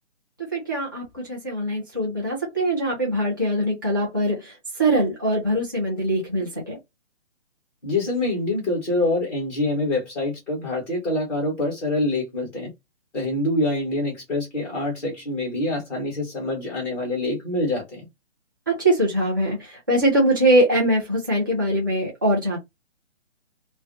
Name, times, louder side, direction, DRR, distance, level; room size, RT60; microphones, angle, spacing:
voice 1, 0.5-4.5 4.8-6.8 18.7-22.6, right 1 dB, 20° right, 0.4 m, -22 dB
voice 2, 7.8-12.7 13.1-18.1, left 2 dB, 5° left, 0.8 m, -25 dB
2.3 x 2.1 x 2.5 m
hypercardioid pair, 160°, 36 cm